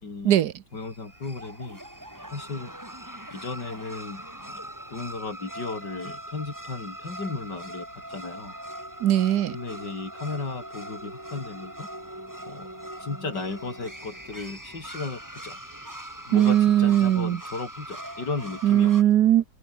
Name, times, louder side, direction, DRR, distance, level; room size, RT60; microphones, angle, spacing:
voice 1, 0.0-0.4 0.7-1.8 2.3-2.7 3.3-8.5 9.5-11.9 12.5-12.7 13.0-15.6 16.2-18.9, left 3 dB, 80° left, 4.7 m, -35 dB
sound 1, 0.8-19.0, right 1 dB, 10° right, 4.4 m, -41 dB
voice 2, 9.0-9.6 16.3-17.4 18.6-19.4, right 11 dB, 70° right, 1.3 m, -19 dB
omnidirectional pair, 1.9 m